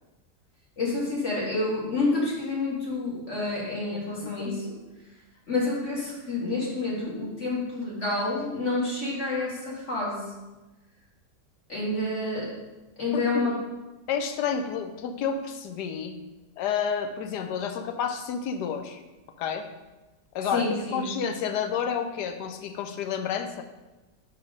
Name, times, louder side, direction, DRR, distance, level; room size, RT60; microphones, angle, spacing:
voice 1, 0.8-4.7 5.5-10.3 11.7-12.5 13.0-13.5 20.5-21.1, left 2 dB, 45° left, -6 dB, 2.0 m, -28 dB
voice 2, 3.9-4.5 13.1-13.5 14.1-16.2 16.6-19.0 19.4-19.7 20.3-20.7 20.9-23.6, left 7 dB, 85° left, 7 dB, 1.2 m, -30 dB
5.1 x 4.7 x 5.0 m, 1.1 s
omnidirectional pair, 1.8 m